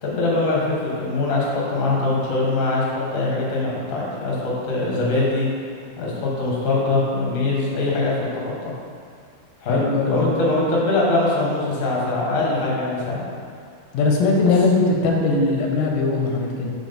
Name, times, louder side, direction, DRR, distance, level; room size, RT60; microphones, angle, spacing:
voice 1, 0.0-5.5 6.0-8.1 8.4-8.7 9.6-13.2, left 2 dB, 50° left, -5 dB, 0.9 m, -22 dB
voice 2, 9.7-10.3 13.9-16.7, left 3 dB, 90° left, 0 dB, 2.4 m, -20 dB
6.2 x 3.9 x 5.7 m, 2.3 s
omnidirectional pair, 3.8 m